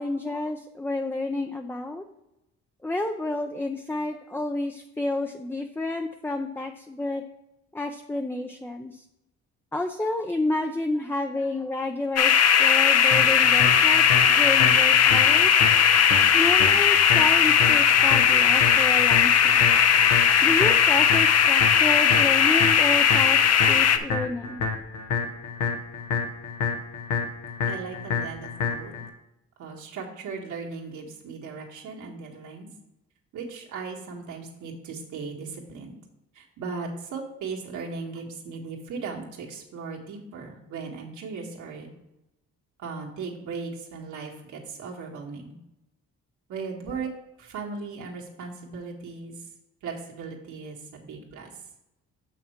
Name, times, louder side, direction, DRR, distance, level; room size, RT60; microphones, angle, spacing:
voice 1, 0.0-2.0 2.8-7.2 7.7-9.0 9.7-15.6 16.3-19.6 20.4-23.4 23.7-24.6, left 2 dB, 5° left, 4 dB, 0.5 m, -30 dB
sound 1, 12.2-24.0, left 8 dB, 55° left, 0.7 m, -18 dB
sound 2, 13.1-29.1, left 5 dB, 90° left, 1.1 m, -30 dB
voice 2, 27.7-28.9 29.6-32.7 33.3-36.0 36.3-41.9 42.8-45.6 46.5-47.1 47.4-49.3 49.8-51.5, right 4 dB, 80° right, -1 dB, 1.9 m, -37 dB
6.9 x 5.8 x 4.5 m, 0.90 s
cardioid pair, 90°, 30 cm